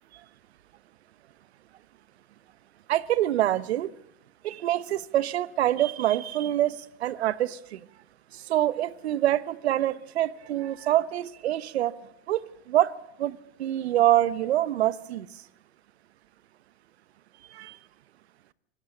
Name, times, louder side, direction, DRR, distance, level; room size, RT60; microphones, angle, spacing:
voice 1, 2.9-3.9 4.4-7.8 8.5-11.9 12.3-12.4 12.7-12.9 13.2-15.3 17.5-17.8, right 13 dB, 90° right, 1.0 m, -25 dB
25.0 x 17.5 x 7.1 m
hypercardioid pair, 105°, 31 cm